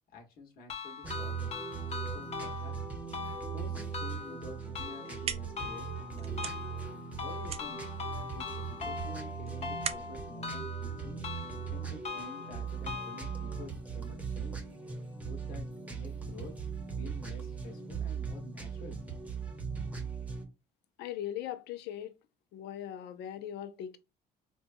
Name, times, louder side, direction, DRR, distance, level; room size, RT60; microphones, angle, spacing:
voice 1, 0.1-1.5 2.0-2.7 3.5-6.5 7.2-7.8 8.2-11.2 11.7-14.6 15.2-16.5 17.0-19.1, left 2 dB, 60° left, 1.2 m, -49 dB
sound 1, 0.7-13.7, left 5 dB, 40° left, 0.7 m, -42 dB
sound 2, 1.0-20.4, right 6 dB, 10° right, 0.8 m, -39 dB
sound 3, 4.9-11.7, right 7 dB, 35° right, 0.4 m, -43 dB
voice 2, 21.0-22.1 22.5-24.0, left 10 dB, 80° left, 0.5 m, -39 dB
4.3 x 2.2 x 2.6 m
cardioid pair, 110°, 17 cm